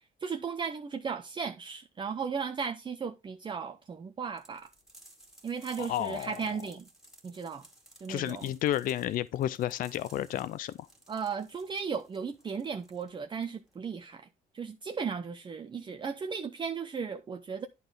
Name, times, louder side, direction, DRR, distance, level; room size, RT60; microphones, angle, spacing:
voice 1, 0.0-4.7 5.4-6.9 7.2-7.7 8.0-8.5 11.1-14.3 14.5-17.7, right 6 dB, 30° right, 0.7 m, -36 dB
sound 1, 4.4-13.8, right 1 dB, 5° right, 2.2 m, -57 dB
voice 2, 5.8-6.3 8.1-10.9, left 12 dB, 55° left, 0.4 m, -31 dB
11.0 x 4.0 x 5.0 m
cardioid pair, 110°, 17 cm